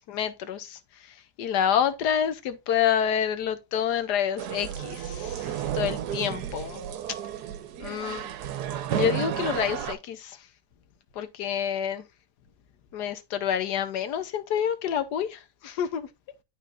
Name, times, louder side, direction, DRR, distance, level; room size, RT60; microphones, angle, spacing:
voice 1, 0.1-0.8 1.1-6.8 7.8-8.3 8.9-10.4 11.2-12.0 12.9-16.1, left 9 dB, 80° left, 1.3 m, -28 dB
sound 1, 4.4-10.0, right 10 dB, 75° right, 1.2 m, -32 dB
11.0 x 3.9 x 2.5 m
omnidirectional pair, 1.8 m